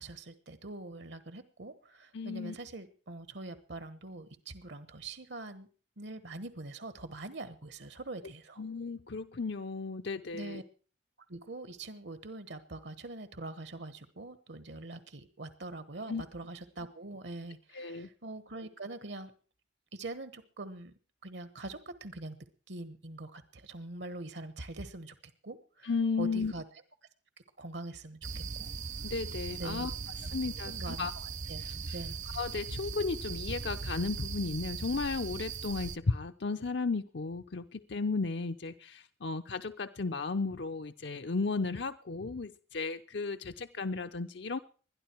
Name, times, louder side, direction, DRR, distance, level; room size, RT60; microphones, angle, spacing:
voice 1, 0.0-5.7 6.0-8.6 10.3-10.6 11.3-19.3 19.9-20.9 21.2-22.4 22.7-25.1 25.4-25.9 26.2-26.6 27.6-28.7 29.6-29.9 30.2-30.3 30.6-32.2, right 2 dB, 70° right, 12 dB, 1.3 m, -43 dB
voice 2, 2.1-2.6 8.6-10.6 16.1-16.2 17.7-18.1 25.8-26.5 29.0-29.9 30.3-31.1 31.6-32.0 32.3-44.6, left 4 dB, 70° left, 8 dB, 0.7 m, -34 dB
sound 1, 28.2-36.0, right 5 dB, 40° right, 0.7 m, -39 dB
21.0 x 12.5 x 4.6 m, 0.40 s
head